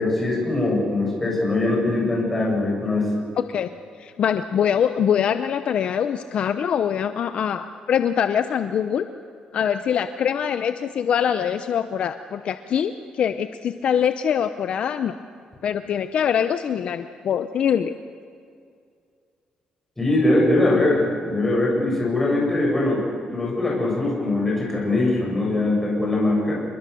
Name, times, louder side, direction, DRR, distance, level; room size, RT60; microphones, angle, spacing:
voice 1, 0.0-3.1 20.0-26.6, left 2 dB, 10° left, -3 dB, 7.4 m, -22 dB
voice 2, 4.0-9.1 9.5-15.1 15.6-17.9, left 8 dB, 50° left, 10 dB, 0.7 m, -23 dB
27.5 x 21.5 x 7.0 m, 2.3 s
cardioid pair, 155°, 2 cm